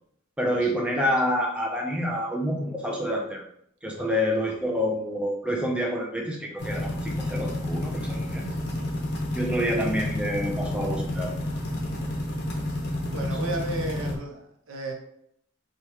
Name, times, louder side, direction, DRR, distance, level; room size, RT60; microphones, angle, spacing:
voice 1, 0.4-3.5 3.8-8.5 9.3-11.3 13.3-13.4, equal, 5° right, 0 dB, 0.4 m, -28 dB
sound 1, 6.6-14.1, left 1 dB, 50° left, 0.6 m, -30 dB
voice 2, 8.3-9.0 11.9-12.2 12.6-14.9, right 2 dB, 80° right, 2 dB, 0.6 m, -36 dB
2.8 x 2.3 x 3.3 m, 0.70 s
head